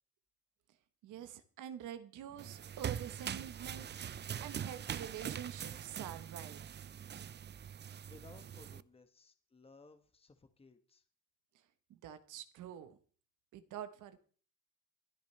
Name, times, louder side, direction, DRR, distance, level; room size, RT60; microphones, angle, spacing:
voice 1, 1.0-6.6 12.0-13.0 13.5-14.2, right 10 dB, 85° right, 10 dB, 1.1 m, -47 dB
sound 1, 2.4-8.8, right 9 dB, 35° right, 0.5 m, -43 dB
voice 2, 8.0-11.0, left 3 dB, 20° left, 8 dB, 1.2 m, -60 dB
22.0 x 10.5 x 3.2 m, 0.42 s
cardioid pair, 90°, 30 cm